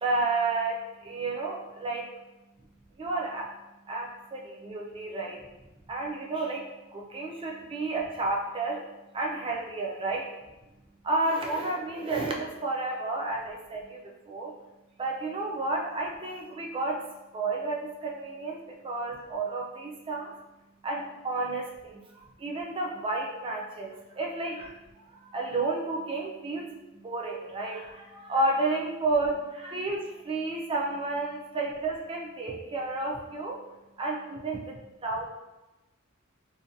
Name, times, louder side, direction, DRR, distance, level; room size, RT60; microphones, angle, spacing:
voice 1, 0.0-2.1 3.0-3.5 3.9-5.4 5.9-8.9 9.1-10.3 11.0-14.5 15.0-20.3 20.8-24.7 25.1-33.6 34.0-35.3, right 2 dB, 25° right, -1 dB, 0.3 m, -31 dB
2.6 x 2.2 x 2.5 m, 1.0 s
head